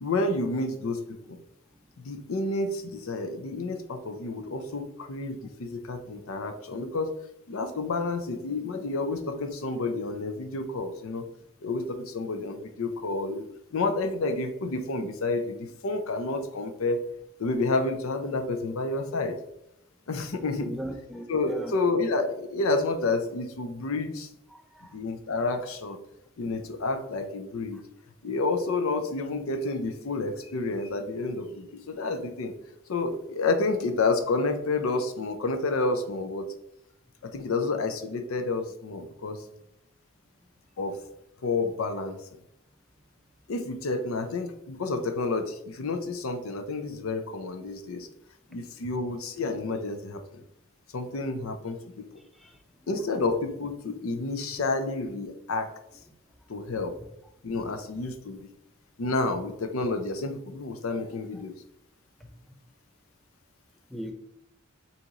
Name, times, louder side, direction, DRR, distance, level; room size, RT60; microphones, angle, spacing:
voice 1, 0.0-1.4 2.0-7.1 7.5-11.2 11.6-17.0 17.4-19.4 20.1-20.8 21.3-24.3 24.9-26.0 26.4-27.8 28.2-32.5 32.9-36.5 37.2-39.4 40.8-41.0 41.4-42.4 43.5-48.1 48.5-50.4 50.9-52.1 52.9-55.7 56.5-57.0 57.4-58.4 59.0-61.5, left 3 dB, 80° left, 7 dB, 0.5 m, -30 dB
voice 2, 20.6-21.7 24.5-24.9 52.3-52.6 57.0-57.1 57.5-57.8 63.9-64.1, equal, ahead, 4 dB, 0.4 m, -39 dB
4.0 x 2.9 x 3.7 m, 0.80 s
head